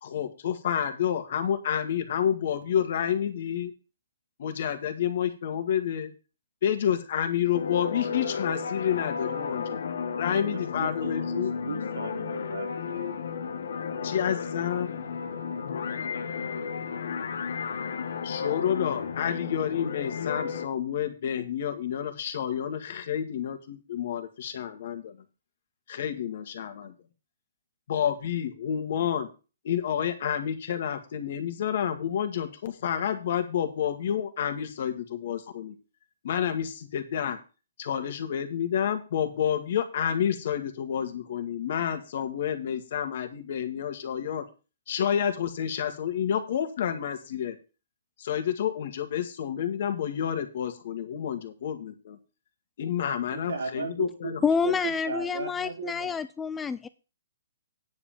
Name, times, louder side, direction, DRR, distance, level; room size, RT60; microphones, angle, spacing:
voice 1, 0.0-3.7 4.4-6.1 6.6-9.8 10.2-11.5 14.0-14.9 18.2-25.2 25.9-26.9 27.9-29.3 29.6-35.8 36.2-37.4 37.8-44.4 44.9-47.6 48.2-52.2 52.8-54.4, left 9 dB, 55° left, 8 dB, 1.8 m, -29 dB
sound 1, 7.5-20.7, left 6 dB, 75° left, 1.1 m, -33 dB
voice 2, 10.2-13.2 53.3-54.3 54.6-56.2, right 4 dB, 80° right, 2 dB, 3.8 m, -36 dB
voice 3, 54.4-56.9, left 6 dB, 10° left, 14 dB, 0.4 m, -28 dB
9.6 x 5.3 x 7.4 m, 0.33 s
hypercardioid pair, 155°, 0 cm